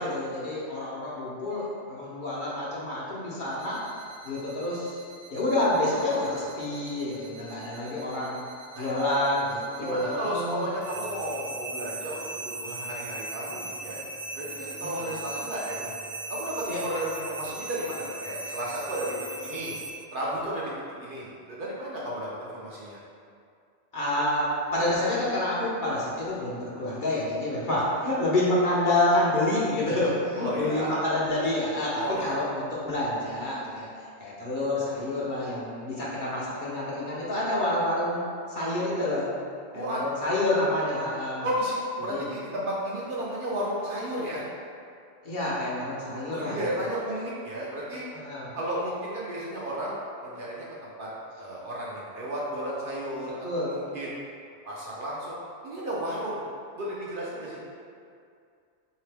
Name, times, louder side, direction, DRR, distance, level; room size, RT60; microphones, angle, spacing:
voice 1, 0.0-3.8 4.2-5.0 5.3-8.5 8.8-10.6 14.8-14.9 16.7-16.8 23.9-33.9 34.2-38.2 38.5-39.3 39.7-41.5 42.1-42.2 45.2-46.6 48.1-48.5 53.4-53.7, left 1 dB, 50° left, -7 dB, 0.8 m, -28 dB
sound 1, 3.5-19.9, right 2 dB, 80° right, 1.0 m, -39 dB
voice 2, 9.8-14.0 14.3-15.9 16.3-19.2 19.4-19.7 20.1-20.7 21.0-23.0 30.4-31.0 32.0-32.4 39.7-40.0 41.4-44.4 46.3-48.0 48.6-51.1 51.4-54.2 54.7-55.4 55.6-56.4 56.8-57.6, right 1 dB, 55° right, -6 dB, 0.7 m, -33 dB
3.8 x 2.8 x 3.3 m, 2.3 s
omnidirectional pair, 1.2 m